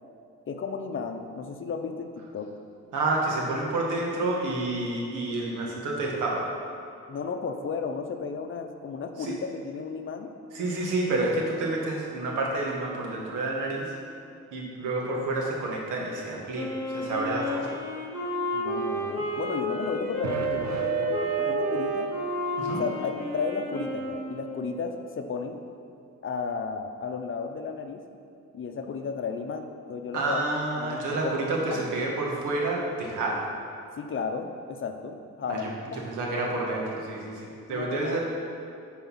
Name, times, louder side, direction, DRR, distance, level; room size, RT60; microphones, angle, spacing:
voice 1, 0.5-2.5 7.1-10.3 18.5-22.1 22.8-25.6 26.2-28.0 28.5-30.5 30.8-31.9 33.9-35.7 37.7-38.2, left 5 dB, 45° left, 6 dB, 0.7 m, -34 dB
voice 2, 2.9-6.5 9.2-9.3 10.5-13.9 14.5-17.7 22.6-22.8 30.1-33.4 35.5-35.7 36.0-38.2, right 2 dB, 85° right, -2 dB, 1.7 m, -29 dB
Wind instrument woodwind instrument, 16.5-24.7, left 1 dB, 10° right, 2.2 m, -32 dB
sound 1, 20.2-22.9, right 9 dB, 65° right, 0.6 m, -31 dB
10.5 x 4.2 x 5.6 m, 2.4 s
cardioid pair, 90°, 30 cm